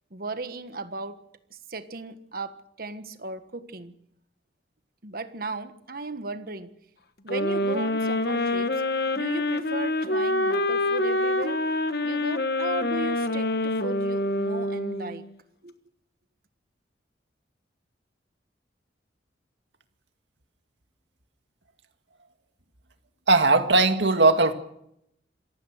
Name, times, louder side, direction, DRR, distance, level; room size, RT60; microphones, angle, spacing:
voice 1, 0.1-1.2 1.5-3.9 5.0-6.8 7.2-8.8 9.1-11.7 12.0-15.3 15.6-15.7, right 2 dB, 50° right, 1.5 m, -36 dB
sound 1, 7.3-15.2, left 1 dB, 60° left, 1.3 m, -26 dB
voice 2, 23.3-24.5, right 3 dB, 75° right, 2.1 m, -19 dB
27.0 x 15.5 x 6.5 m
head